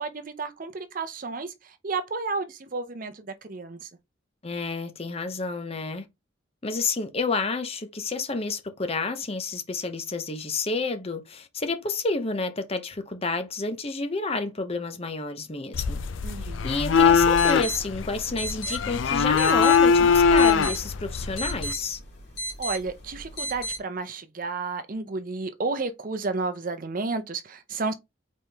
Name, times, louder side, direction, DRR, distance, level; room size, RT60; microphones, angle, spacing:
voice 1, 0.0-3.9 16.2-16.7 22.6-27.9, right 3 dB, 45° right, 0.6 m, -32 dB
voice 2, 4.4-6.0 6.6-16.0 16.4-22.0, left 3 dB, 30° left, 0.7 m, -30 dB
sound 1, 15.7-21.7, left 6 dB, 75° left, 0.4 m, -21 dB
sound 2, 17.1-23.8, right 1 dB, 55° left, 2.6 m, -36 dB
4.2 x 3.5 x 3.4 m
head